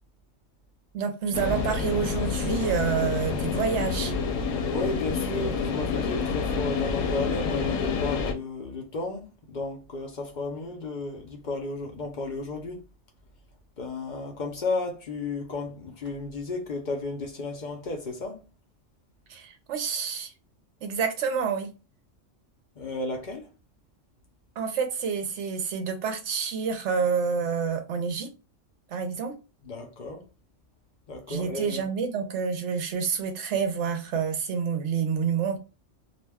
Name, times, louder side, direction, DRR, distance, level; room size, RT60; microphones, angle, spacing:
voice 1, 0.9-4.1 5.9-6.0 19.3-20.3 20.8-21.7 24.6-28.3 28.9-29.4 31.3-35.6, right 6 dB, 70° right, 0.8 m, -28 dB
sound 1, 1.3-8.3, left 5 dB, 80° left, 0.9 m, -28 dB
voice 2, 4.7-12.8 13.8-18.4 22.8-23.5 29.7-30.3 31.1-31.8, left 3 dB, 50° left, 0.6 m, -33 dB
2.4 x 2.2 x 3.3 m
omnidirectional pair, 1.3 m